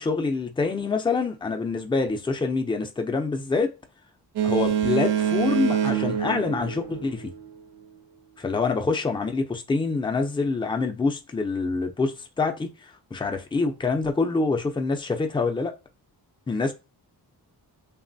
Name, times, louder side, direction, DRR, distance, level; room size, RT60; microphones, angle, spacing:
voice 1, 0.0-3.7 4.4-7.3 8.4-12.7 13.1-15.7 16.5-16.7, left 4 dB, 15° left, 0.4 m, -26 dB
Boat Water vehicle, 4.4-7.5, right 9 dB, 80° right, 0.6 m, -25 dB
3.1 x 2.0 x 2.6 m
wide cardioid pair, 105°, 40 cm